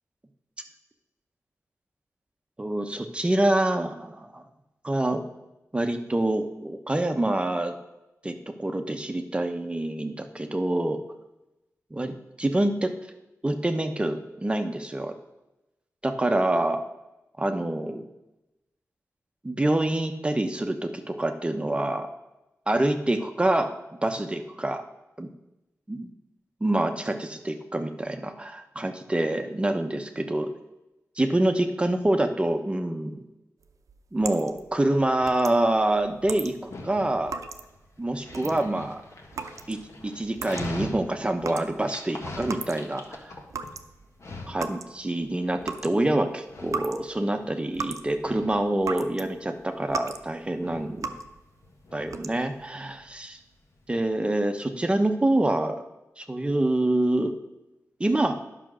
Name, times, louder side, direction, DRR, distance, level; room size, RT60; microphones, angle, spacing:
voice 1, 2.6-4.4 4.8-5.2 5.7-7.7 8.2-11.0 11.9-12.9 13.4-15.1 16.0-16.8 17.4-18.0 19.4-22.1 22.7-23.7 24.0-24.8 25.2-25.3 25.9-26.1 26.6-30.5 31.2-33.2 34.1-37.3 38.0-39.0 39.7-39.8 40.0-43.3 44.5-51.1 51.9-53.4 53.9-55.8 56.2-57.4 58.0-58.3, right 1 dB, 20° right, 6 dB, 0.8 m, -26 dB
sound 1, 33.6-43.1 43.3-49.3 49.6-50.3 50.6-51.4 51.9-52.6, right 4 dB, 75° right, 0.7 m, -38 dB
Dog, 34.9-54.1, left 2 dB, 60° left, 1.5 m, -44 dB
10.5 x 5.8 x 6.2 m, 0.96 s
wide cardioid pair, 95°, 6 cm